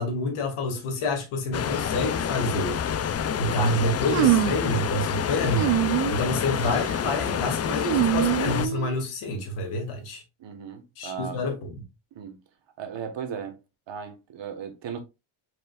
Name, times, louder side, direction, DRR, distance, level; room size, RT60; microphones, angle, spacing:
voice 1, 0.0-2.8 3.4-5.8 6.1-10.2 11.0-11.8, left 1 dB, 80° left, 2.0 m, -28 dB
sound 1, 1.5-8.7, left 8 dB, 35° left, 0.4 m, -28 dB
sound 2, 4.1-4.7 5.5-6.2 6.6-7.0 7.8-9.0, right 14 dB, 85° right, 0.6 m, -24 dB
voice 2, 10.4-11.4 12.1-12.4 12.8-13.6 13.9-15.0, right 7 dB, 60° right, 1.3 m, -36 dB
4.9 x 4.5 x 2.3 m
cardioid pair, 90°, 50 cm